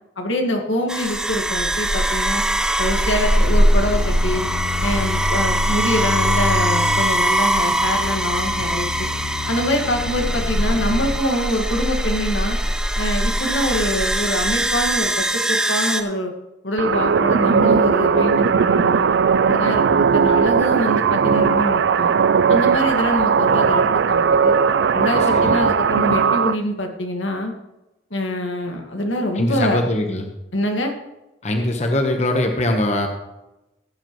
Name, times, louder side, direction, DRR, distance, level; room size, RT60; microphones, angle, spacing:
voice 1, 0.2-2.4 2.8-4.5 4.8-9.1 9.5-12.6 13.0-16.3 16.6-19.1 19.5-22.1 22.5-24.6 24.9-27.5 28.1-29.8 30.5-30.9, left 1 dB, 90° left, 3 dB, 1.9 m, -24 dB
sound 1, 0.9-16.0, right 1 dB, 5° right, 0.5 m, -21 dB
sound 2, 3.4-11.2, left 6 dB, 65° left, 0.3 m, -30 dB
sound 3, 16.8-26.5, right 6 dB, 70° right, 0.3 m, -17 dB
voice 2, 25.2-25.6 29.3-30.3 31.4-33.1, left 1 dB, 35° left, 4 dB, 1.1 m, -22 dB
16.5 x 8.5 x 3.1 m, 0.97 s
head